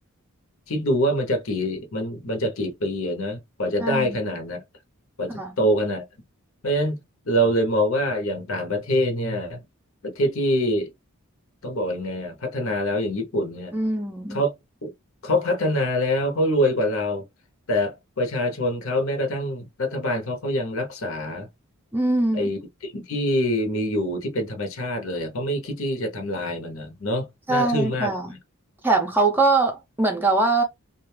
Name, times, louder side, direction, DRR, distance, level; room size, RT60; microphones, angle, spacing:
voice 1, 0.7-4.6 5.2-6.0 6.6-7.0 7.2-9.6 10.0-10.9 11.6-13.8 14.3-14.5 14.8-14.9 15.2-17.2 17.7-21.5 22.3-28.1, equal, 65° left, 0.8 m, -25 dB
voice 2, 3.8-4.3 5.3-5.5 13.7-14.4 21.9-22.5 27.5-28.3 28.8-30.6, right 2 dB, 10° right, 0.5 m, -22 dB
2.4 x 2.2 x 3.2 m
head